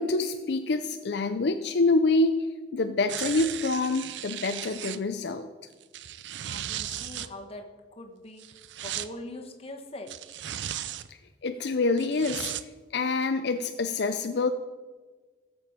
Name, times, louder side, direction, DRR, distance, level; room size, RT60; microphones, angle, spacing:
voice 1, 0.0-2.4 2.7-5.5 11.1-12.5 12.9-14.5, left 3 dB, 65° left, 7 dB, 0.5 m, -26 dB
sound 1, 3.1-5.0 5.8-7.3 8.4-9.1 10.1-11.1 12.0-12.6 13.2-13.3, right 11 dB, 75° right, 0.5 m, -36 dB
voice 2, 6.4-7.7 8.0-8.4 8.8-10.1, left 1 dB, 35° left, 3 dB, 1.3 m, -42 dB
17.5 x 7.0 x 5.0 m, 1.4 s
head